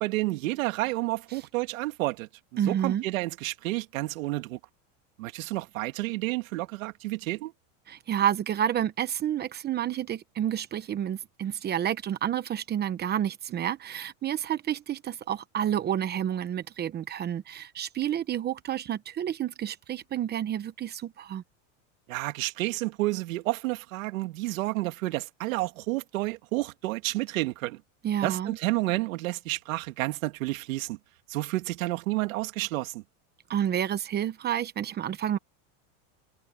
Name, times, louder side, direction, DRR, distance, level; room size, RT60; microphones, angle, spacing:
voice 1, 0.0-4.6 5.2-7.5 22.1-27.8 28.2-31.0 31.3-33.0, right 20 dB, 80° right, 2.2 m, -30 dB
voice 2, 2.6-3.0 7.9-21.4 28.0-28.6 33.5-35.4, right 10 dB, 25° right, 1.0 m, -29 dB
supercardioid pair, 150°, 40 cm